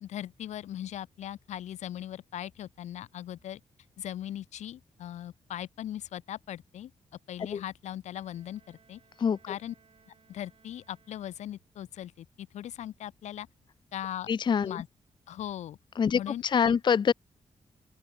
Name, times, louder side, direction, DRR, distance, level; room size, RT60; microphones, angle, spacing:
voice 1, 0.0-3.6 4.0-6.9 7.3-9.0 9.5-9.7 10.3-13.5 13.9-14.3 14.6-14.9 15.3-15.8 16.1-16.8, left 11 dB, 90° left, 0.6 m, -39 dB
Bowed string instrument, 8.1-11.9, right 6 dB, 55° right, 5.3 m, -64 dB
voice 2, 14.3-14.8 16.0-16.2 16.5-17.1, left 7 dB, 40° left, 0.4 m, -24 dB
open air
cardioid pair, 85°, 12 cm